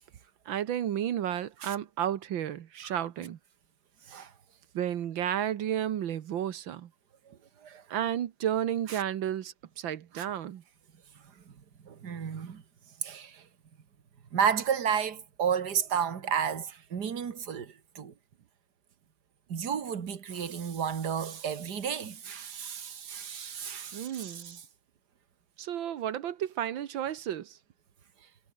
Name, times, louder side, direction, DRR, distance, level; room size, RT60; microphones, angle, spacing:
voice 1, 0.4-3.4 4.7-6.9 7.9-10.6 23.9-24.6 25.6-27.6, right 10 dB, 80° right, 1.1 m, -32 dB
voice 2, 11.8-12.6 13.0-13.4 14.3-18.1 19.5-24.6, right 7 dB, 40° right, 1.7 m, -32 dB
omnidirectional pair, 3.8 m